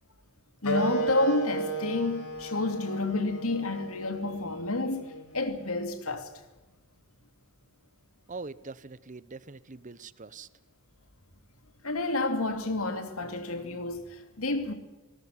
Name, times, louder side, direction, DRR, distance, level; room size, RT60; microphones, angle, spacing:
Wind instrument woodwind instrument, 0.6-5.8, right 1 dB, 85° left, 4.4 m, -34 dB
voice 1, 0.6-6.3 11.8-14.7, left 2 dB, 70° left, 2.8 m, -30 dB
voice 2, 8.3-10.5, right 4 dB, 35° right, 0.8 m, -43 dB
19.5 x 19.0 x 9.8 m
head